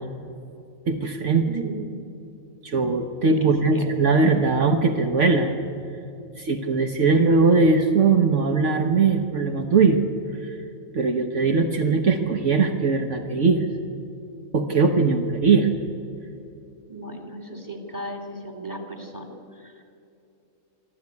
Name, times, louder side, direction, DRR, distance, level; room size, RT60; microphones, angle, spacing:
voice 1, 0.9-1.5 2.6-5.6 6.4-10.0 10.4-10.6 10.9-13.7 14.5-15.7, right 4 dB, 65° right, 5 dB, 1.4 m, -20 dB
voice 2, 1.5-1.9 3.4-3.8 16.9-19.8, right 1 dB, 15° right, 4 dB, 2.7 m, -36 dB
25.0 x 13.0 x 9.6 m, 2.7 s
omnidirectional pair, 1.4 m